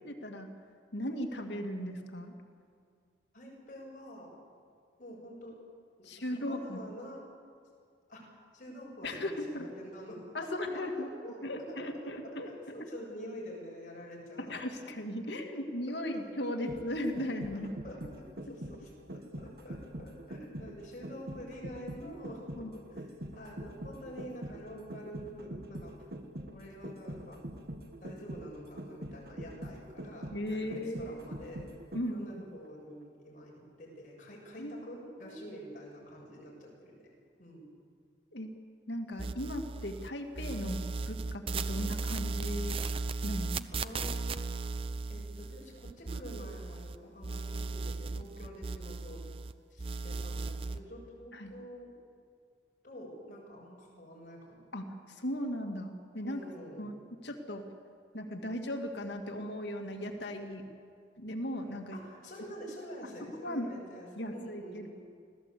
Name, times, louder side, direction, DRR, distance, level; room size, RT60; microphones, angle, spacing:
voice 1, 0.0-0.5 0.9-2.3 6.0-6.8 9.0-9.7 10.3-11.1 11.4-12.9 14.4-17.8 22.6-22.7 30.3-31.3 31.9-32.4 34.6-34.7 35.2-35.4 38.3-38.5 38.9-40.8 41.1-42.8 43.2-43.7 51.3-51.5 54.7-56.5 56.8-57.6 58.1-60.6 61.2-62.0 63.2-63.7 64.2-64.9, left 1 dB, 70° left, 4 dB, 2.1 m, -37 dB
voice 2, 3.3-4.3 5.0-5.6 6.0-7.2 8.1-8.2 8.5-10.2 10.7-11.8 12.0-14.9 15.2-15.3 15.9-16.6 17.5-23.1 23.4-25.9 26.5-27.4 28.0-31.7 32.1-37.0 37.4-37.6 41.7-42.0 43.7-44.7 45.1-49.2 49.7-51.9 52.8-54.6 56.2-56.9 61.9-64.9, equal, 45° left, -2 dB, 7.2 m, -47 dB
sound 1, 16.4-32.3 32.6-32.7, right 1 dB, 55° right, 1.6 m, -44 dB
sound 2, 39.2-40.1 40.4-47.0 47.2-49.5 49.8-50.8, right 3 dB, 30° right, 0.6 m, -36 dB
25.5 x 16.5 x 8.4 m, 2.2 s
head